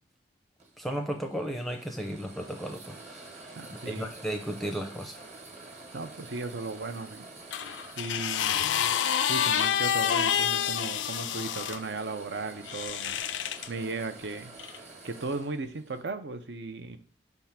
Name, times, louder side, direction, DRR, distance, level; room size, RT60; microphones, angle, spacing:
sound 1, 0.6-16.1, right 3 dB, 40° right, 1.3 m, -48 dB
voice 1, 0.8-3.3 4.0-5.2, right 1 dB, ahead, 3 dB, 0.6 m, -34 dB
voice 2, 3.6-4.1 5.9-7.3 8.0-8.8 9.3-13.2 13.7-14.5 15.0-17.0, right 3 dB, 70° right, 9 dB, 0.7 m, -36 dB
sound 2, 7.5-11.8 12.7-13.7 14.6-14.8, left 9 dB, 90° left, 0.4 m, -28 dB
5.4 x 3.6 x 5.8 m, 0.42 s
head